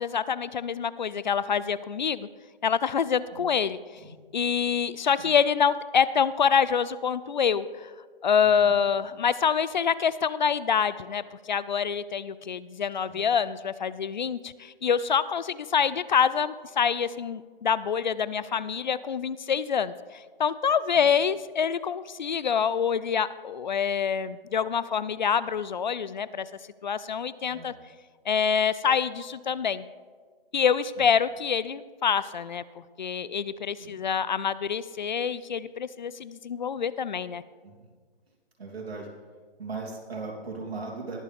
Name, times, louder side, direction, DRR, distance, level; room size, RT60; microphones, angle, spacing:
voice 1, 0.0-2.3 2.6-3.8 4.3-7.9 8.2-26.5 26.8-27.7 28.3-29.8 30.5-32.6 33.0-37.4, left 7 dB, 50° left, 17 dB, 0.4 m, -26 dB
voice 2, 8.4-8.7 13.1-13.2 21.0-21.1 27.5-27.7 31.0-31.1 33.8-34.0 37.6-37.9 38.6-39.1 39.6-41.2, right 3 dB, 85° right, -1 dB, 3.5 m, -38 dB
20.0 x 7.3 x 3.5 m, 1.5 s
hypercardioid pair, 165°, 30 cm